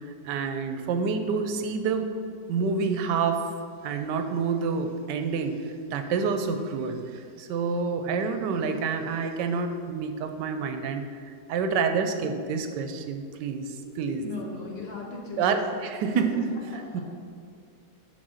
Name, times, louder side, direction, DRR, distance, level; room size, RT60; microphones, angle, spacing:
voice 1, 0.2-2.1 2.5-3.4 3.8-5.6 5.9-14.2 15.4-16.3 16.7-17.0, right 5 dB, 90° right, 7 dB, 1.3 m, -28 dB
voice 2, 13.8-15.6 16.1-16.2 16.7-17.0, left 3 dB, 45° left, -2 dB, 0.9 m, -37 dB
6.1 x 4.1 x 6.3 m, 2.3 s
omnidirectional pair, 1.8 m